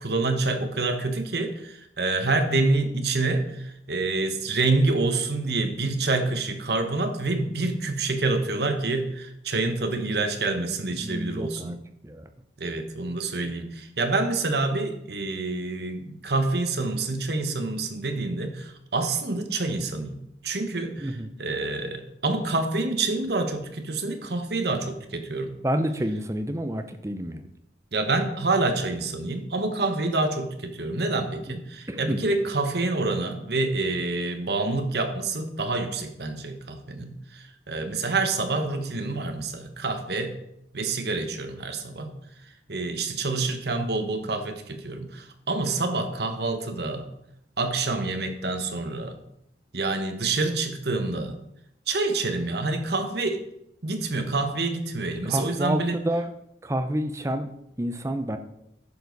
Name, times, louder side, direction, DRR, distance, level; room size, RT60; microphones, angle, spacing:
voice 1, 0.0-11.8 12.6-20.2 20.4-21.1 21.4-25.5 27.9-40.4 40.7-42.1 42.7-47.1 47.6-49.1 49.7-51.4 51.9-53.4 53.8-56.0, right 3 dB, 60° right, 6 dB, 1.2 m, -27 dB
voice 2, 11.0-11.8 12.0-12.2 21.0-21.4 25.6-27.4 31.5-31.6 31.9-32.3 55.2-56.3 56.6-57.5 57.8-58.4, right 1 dB, 15° right, 8 dB, 0.7 m, -29 dB
11.0 x 7.1 x 4.1 m, 0.80 s
head